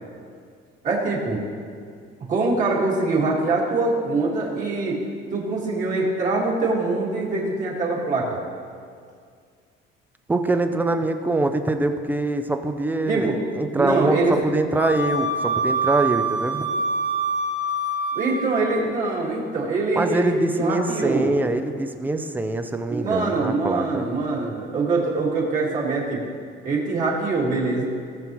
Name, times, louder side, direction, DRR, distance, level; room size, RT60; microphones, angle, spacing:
voice 1, 0.8-1.4 2.3-5.0 5.3-8.4 13.1-13.4 13.7-14.3 18.1-21.4 22.9-26.2 26.6-27.9, right 3 dB, 35° right, -3 dB, 1.9 m, -23 dB
voice 2, 10.3-16.6 20.0-24.1, right 2 dB, 10° right, 7 dB, 0.4 m, -24 dB
Wind instrument woodwind instrument, 14.8-18.8, right 2 dB, 85° left, 1.6 m, -25 dB
17.5 x 7.2 x 3.1 m, 2.2 s
cardioid pair, 160°, 21 cm